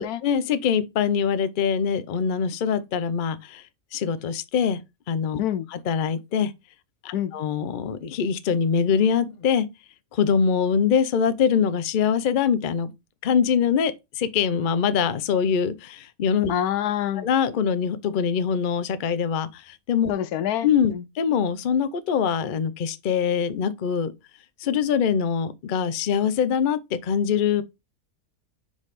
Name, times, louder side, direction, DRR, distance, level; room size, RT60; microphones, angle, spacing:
voice 1, 0.0-3.6 3.9-4.8 5.1-5.4 5.9-6.5 7.0-9.7 10.1-12.9 13.2-16.5 17.2-20.1 20.6-24.1 24.6-27.6, left 7 dB, 65° left, 0.5 m, -23 dB
voice 2, 16.5-17.3 20.1-21.0, left 10 dB, 80° left, 1.1 m, -27 dB
5.1 x 4.1 x 4.9 m
omnidirectional pair, 1.6 m